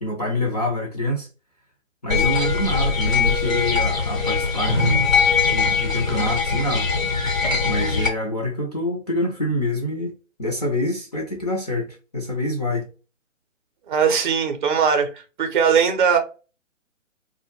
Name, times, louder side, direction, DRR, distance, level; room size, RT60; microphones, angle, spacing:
voice 1, 0.0-1.3 2.0-5.1 5.5-6.9 7.6-10.1 10.4-12.9, left 1 dB, 35° left, 0.4 m, -26 dB
sound 1, 2.1-8.1, left 4 dB, 90° left, 0.9 m, -21 dB
voice 2, 13.9-15.1 15.4-16.2, right 6 dB, 40° right, 0.5 m, -19 dB
2.1 x 2.0 x 3.0 m
figure-of-eight pair, 135°, 39 cm